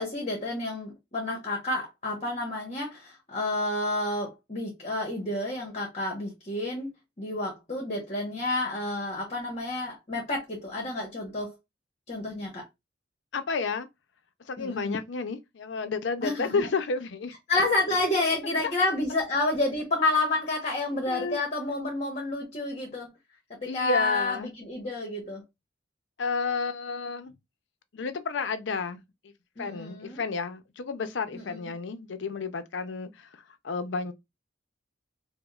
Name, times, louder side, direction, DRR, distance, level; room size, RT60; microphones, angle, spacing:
voice 1, 0.0-6.9 7.2-11.5 12.1-12.6 14.6-15.0 16.2-16.7 17.5-23.1 23.6-25.4 29.6-30.2 31.3-31.6, left 2 dB, 35° left, 1.0 m, -30 dB
voice 2, 13.3-13.9 14.4-17.3 21.1-21.4 23.6-24.5 26.2-27.3 27.9-29.0 29.6-34.1, left 4 dB, 70° left, 0.5 m, -31 dB
4.9 x 2.1 x 2.3 m
head